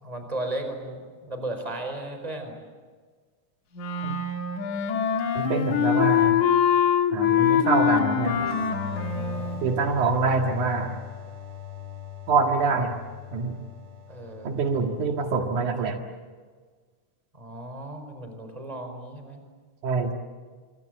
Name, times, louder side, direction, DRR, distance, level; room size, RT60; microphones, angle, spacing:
voice 1, 0.0-2.6 8.8-9.6 14.1-14.5 17.3-19.4, right 1 dB, 10° right, 6 dB, 4.7 m, -35 dB
Wind instrument woodwind instrument, 3.7-9.6, left 8 dB, 75° left, 3.1 m, -23 dB
voice 2, 5.3-6.4 7.1-8.5 9.6-11.0 12.3-13.0 13.3-13.6 14.4-16.0 19.8-20.1, right 4 dB, 75° right, 3 dB, 3.4 m, -25 dB
sound 1, 8.4-15.8, left 8 dB, 35° right, 4.0 m, -39 dB
26.0 x 26.0 x 7.9 m, 1.5 s
omnidirectional pair, 3.5 m